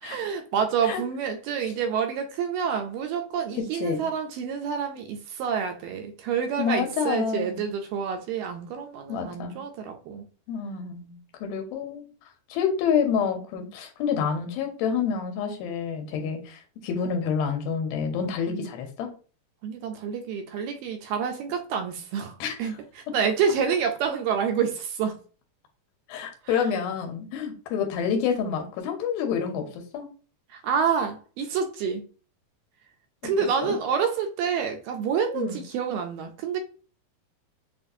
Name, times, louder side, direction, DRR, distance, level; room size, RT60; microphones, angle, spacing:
voice 1, 0.0-10.2 18.5-18.7 19.6-25.2 26.4-26.5 30.5-32.1 33.2-36.6, right 7 dB, 80° right, 2.1 m, -28 dB
voice 2, 3.6-4.0 6.6-7.7 9.1-9.6 10.5-12.1 12.5-19.1 22.4-22.5 26.1-30.1 33.2-33.3 33.6-33.8 35.3-35.6, left 6 dB, 85° left, 2.6 m, -28 dB
6.8 x 2.4 x 2.6 m
omnidirectional pair, 4.3 m